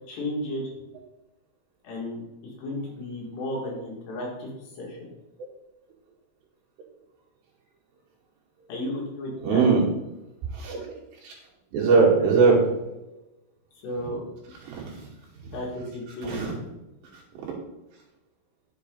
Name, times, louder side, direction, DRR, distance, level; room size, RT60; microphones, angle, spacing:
voice 1, 0.1-0.6 1.8-4.5 4.8-5.1 8.7-9.6 12.4-12.5 13.8-14.5 15.5-16.7, left 1 dB, 65° left, -2 dB, 4.2 m, -34 dB
voice 2, 9.4-9.8 10.5-10.9 11.7-12.6 14.6-15.1 16.2-16.5, right 4 dB, 70° right, -4 dB, 4.4 m, -20 dB
10.5 x 7.5 x 3.9 m, 0.98 s
omnidirectional pair, 5.4 m